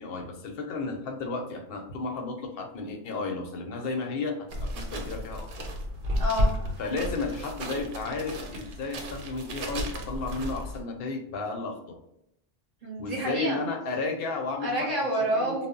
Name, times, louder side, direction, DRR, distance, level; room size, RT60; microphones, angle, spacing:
voice 1, 0.0-4.5 4.7-5.7 6.8-12.0 13.0-14.9 15.3-15.6, left 3 dB, 60° left, 2 dB, 0.7 m, -33 dB
sound 1, 4.5-10.8, equal, 80° right, 0.9 m, -32 dB
voice 2, 6.1-6.5 12.8-13.6 14.6-15.7, equal, 40° right, -5 dB, 0.8 m, -28 dB
2.0 x 2.0 x 3.6 m, 0.78 s
omnidirectional pair, 1.2 m